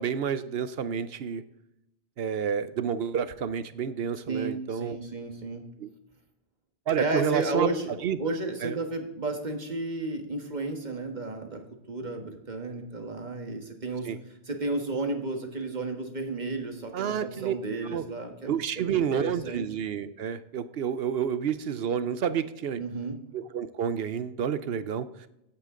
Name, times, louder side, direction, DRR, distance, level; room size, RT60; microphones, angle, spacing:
voice 1, 0.0-1.4 2.2-5.0 5.8-5.9 6.9-7.7 8.0-8.2 8.6-8.8 14.0-14.2 16.9-17.5 17.9-18.0 18.5-22.8 23.3-25.3, right 8 dB, 65° right, 14 dB, 0.9 m, -29 dB
voice 2, 4.3-5.7 7.0-7.9 8.2-14.1 14.5-19.6 22.7-23.2, right 2 dB, 40° right, 4 dB, 1.6 m, -33 dB
15.5 x 8.7 x 3.8 m, 0.84 s
omnidirectional pair, 1.1 m